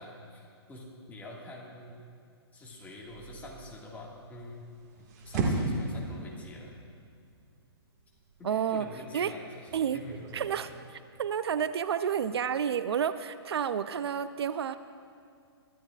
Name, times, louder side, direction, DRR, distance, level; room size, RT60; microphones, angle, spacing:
voice 1, 0.0-2.0 2.5-4.7 5.0-6.7 8.4-10.2, left 1 dB, 10° left, -3 dB, 1.9 m, -46 dB
sound 1, 3.1-10.6, right 2 dB, 40° right, 1.9 m, -37 dB
voice 2, 8.4-8.9 9.1-9.3 9.7-10.0 10.3-10.7 11.2-14.8, right 8 dB, 70° right, 13 dB, 0.5 m, -30 dB
23.0 x 12.5 x 2.5 m, 2.3 s
hypercardioid pair, 145°, 14 cm